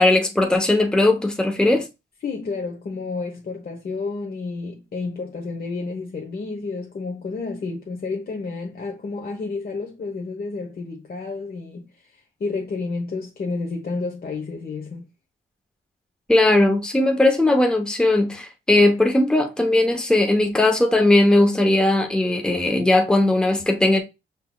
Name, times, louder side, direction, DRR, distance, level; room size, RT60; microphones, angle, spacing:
voice 1, 0.0-1.9 16.3-24.0, left 2 dB, 5° left, 0.9 m, -18 dB
voice 2, 2.2-15.1, left 4 dB, 45° left, 1.0 m, -30 dB
5.6 x 3.9 x 2.3 m
cardioid pair, 85°, 21 cm